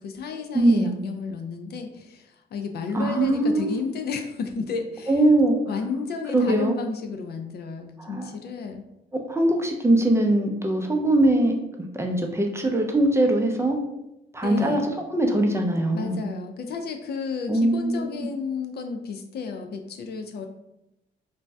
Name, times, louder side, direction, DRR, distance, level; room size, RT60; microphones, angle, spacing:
voice 1, 0.0-5.2 5.7-8.8 14.4-14.8 15.9-20.5, left 5 dB, 55° left, 5 dB, 0.4 m, -32 dB
voice 2, 0.5-0.9 2.9-3.8 5.1-5.5 6.3-6.7 8.0-8.3 9.3-11.5 11.9-13.8 14.3-14.8 15.1-16.2 17.5-18.3, right 1 dB, 15° right, 2 dB, 0.4 m, -21 dB
2.6 x 2.2 x 3.2 m, 0.87 s
cardioid pair, 90°, 20 cm